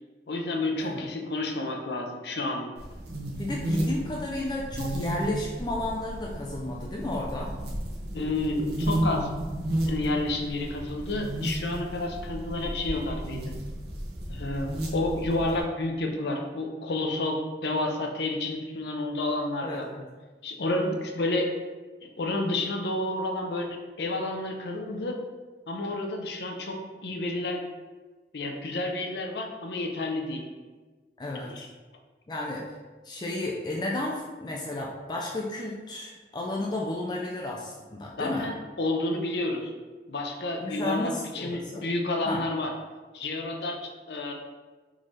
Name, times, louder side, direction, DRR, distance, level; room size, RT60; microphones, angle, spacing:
voice 1, 0.3-2.7 8.1-9.3 9.9-13.5 14.3-19.9 20.4-21.5 22.0-23.7 24.0-25.2 25.7-27.6 28.3-30.4 31.5-31.7 38.2-39.7 40.1-42.7 43.1-44.3, left 2 dB, 75° left, 3 dB, 0.6 m, -30 dB
sound 1, 2.8-15.6, right 1 dB, 70° right, 0.9 m, -33 dB
voice 2, 3.4-7.5 19.6-20.0 31.2-31.6 32.3-32.7 33.0-38.5 40.6-41.9 42.3-42.4, left 2 dB, 25° left, -2 dB, 0.4 m, -32 dB
3.9 x 3.7 x 3.2 m, 1.3 s
head